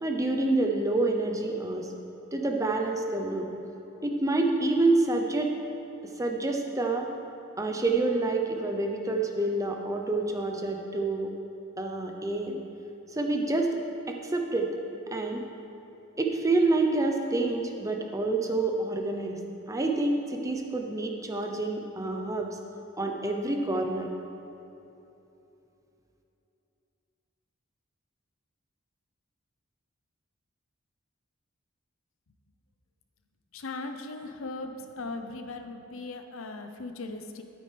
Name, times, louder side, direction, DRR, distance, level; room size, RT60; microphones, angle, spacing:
voice 1, 0.0-1.9 2.3-3.5 4.0-5.5 6.2-7.1 7.6-11.3 11.8-12.6 13.1-13.8 14.1-14.7 15.1-15.4 16.2-19.4 19.7-22.5 23.0-24.1, right 2 dB, 15° right, 2 dB, 0.7 m, -27 dB
voice 2, 33.5-37.4, left 3 dB, 75° left, 7 dB, 0.7 m, -38 dB
12.5 x 8.9 x 3.4 m, 3.0 s
head